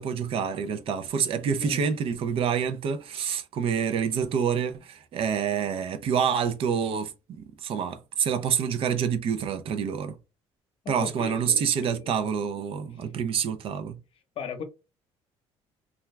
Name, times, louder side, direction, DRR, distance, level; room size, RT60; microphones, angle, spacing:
voice 1, 0.0-10.1 10.9-14.0, right 7 dB, 55° right, 0.4 m, -27 dB
voice 2, 10.8-12.2 12.9-13.1 14.4-14.6, left 6 dB, 55° left, 0.7 m, -38 dB
2.3 x 2.2 x 3.1 m
cardioid pair, 115°, 11 cm